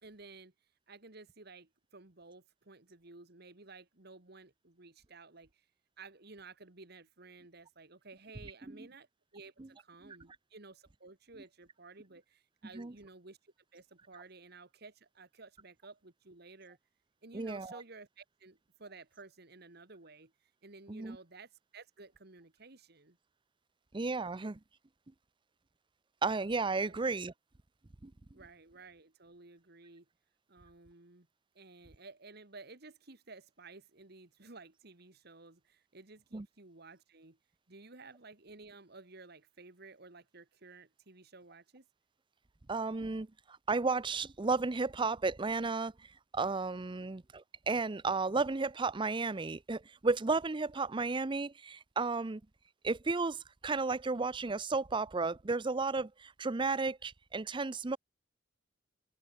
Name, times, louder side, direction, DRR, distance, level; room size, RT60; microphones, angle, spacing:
voice 1, 0.0-0.5 0.9-5.7 6.0-9.1 9.3-16.8 17.2-23.2 26.9-27.0 28.3-30.1 30.5-31.3 31.5-37.4 37.7-41.8 46.9-47.1, right 3 dB, 55° right, 2.3 m, -54 dB
voice 2, 17.3-17.8 20.9-21.2 23.9-24.6 26.2-27.3 28.0-28.1 36.3-36.5 42.7-45.9 46.3-52.4 52.8-58.0, right 3 dB, 25° right, 0.6 m, -33 dB
head